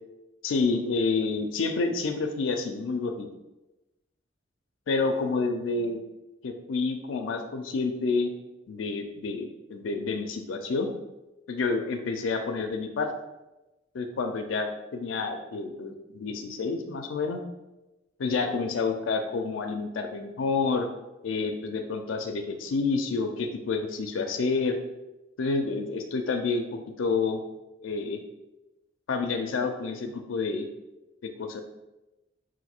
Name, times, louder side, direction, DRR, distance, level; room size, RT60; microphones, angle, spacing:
voice 1, 0.4-3.3 4.9-6.0 6.4-8.3 8.7-10.9 11.5-13.1 13.9-17.4 18.2-20.9 21.2-24.8 25.4-26.6 27.0-27.4 27.8-28.2 29.1-30.6 31.2-31.6, left 4 dB, 85° left, 5 dB, 0.4 m, -29 dB
3.9 x 2.5 x 4.3 m, 1.0 s
head